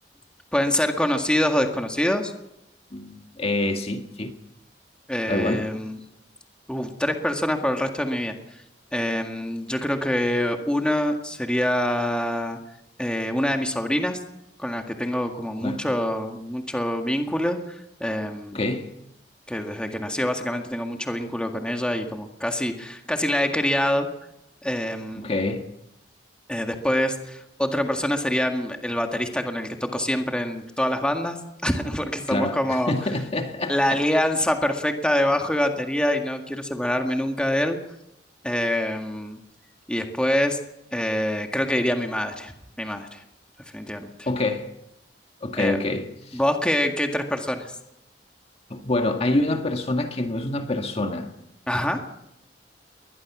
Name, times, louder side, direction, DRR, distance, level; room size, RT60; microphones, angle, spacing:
voice 1, 0.5-2.3 5.1-6.0 6.7-8.4 8.9-12.6 13.0-14.2 14.6-18.6 19.5-24.1 24.6-25.3 26.5-31.4 31.6-32.9 33.7-37.8 38.4-39.4 39.9-40.6 40.9-43.2 43.7-44.3 45.6-45.8 46.3-47.7 51.7-52.0, left 1 dB, 5° left, 1.9 m, -25 dB
voice 2, 2.9-4.3 5.3-5.7 15.6-15.8 18.5-18.9 25.2-25.6 32.3-34.1 44.3-44.6 45.4-46.4 48.7-51.3, left 2 dB, 35° left, 1.8 m, -26 dB
22.0 x 20.0 x 6.1 m
head